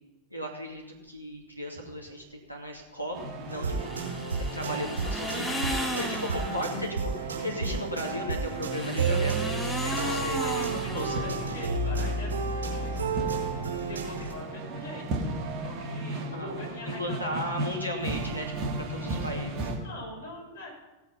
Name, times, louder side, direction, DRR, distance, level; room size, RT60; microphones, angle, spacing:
voice 1, 0.3-3.9 4.5-10.4 10.9-11.2 16.3-16.5 17.0-19.7, equal, 90° left, 0 dB, 2.5 m, -36 dB
sound 1, 3.1-19.8, right 2 dB, 35° right, 2.0 m, -37 dB
sound 2, 3.5-14.3, right 4 dB, 70° right, 4.8 m, -31 dB
sound 3, 3.7-6.9 8.3-11.7, left 1 dB, 10° left, 1.6 m, -35 dB
voice 2, 9.9-12.4 12.8-13.0 13.8-15.2 15.6-17.4 17.9-18.0 18.8-19.4 19.7-20.7, left 1 dB, 65° left, -2 dB, 5.2 m, -42 dB
16.5 x 8.3 x 5.6 m, 1.1 s
figure-of-eight pair, 90°, 0 cm